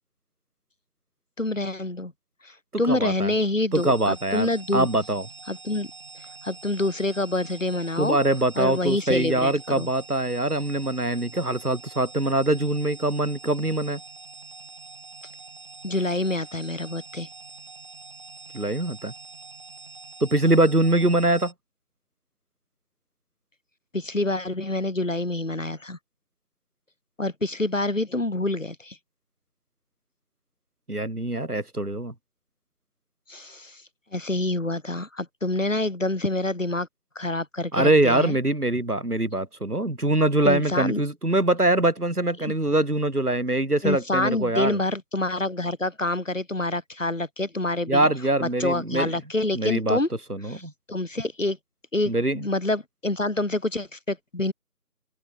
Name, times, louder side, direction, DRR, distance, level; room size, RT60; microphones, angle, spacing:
voice 1, 1.4-2.1 2.4-4.9 5.5-5.9 6.4-8.2 8.6-9.9 15.8-17.3 23.9-26.0 27.2-29.0 33.3-33.8 34.1-36.9 37.2-38.4 40.4-41.0 42.4-42.5 43.8-48.1 48.4-50.1 50.4-50.6 50.9-51.6 51.9-54.5, left 2 dB, 55° left, 4.3 m, -27 dB
voice 2, 2.9-3.3 3.7-5.3 8.0-14.0 18.5-19.1 20.2-21.5 30.9-32.1 37.7-44.8 47.9-49.1 49.5-50.0 50.3-50.7 52.1-52.4, right 1 dB, 75° right, 6.0 m, -23 dB
sound 1, 3.7-21.5, right 3 dB, 20° right, 7.2 m, -45 dB
open air
figure-of-eight pair, 175°, 46 cm